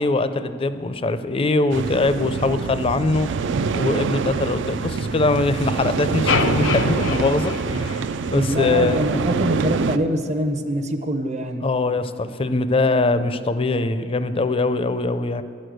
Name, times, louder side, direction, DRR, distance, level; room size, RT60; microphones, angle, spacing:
voice 1, 0.0-3.3 3.7-9.0 11.6-15.4, left 2 dB, 30° left, 11 dB, 0.4 m, -22 dB
sound 1, 1.7-10.0, right 5 dB, 65° right, 0.4 m, -25 dB
sound 2, 6.3-8.5, left 4 dB, 75° left, 0.6 m, -25 dB
voice 2, 8.3-11.6, equal, 35° right, 7 dB, 0.7 m, -24 dB
11.5 x 6.5 x 7.8 m, 2.4 s
head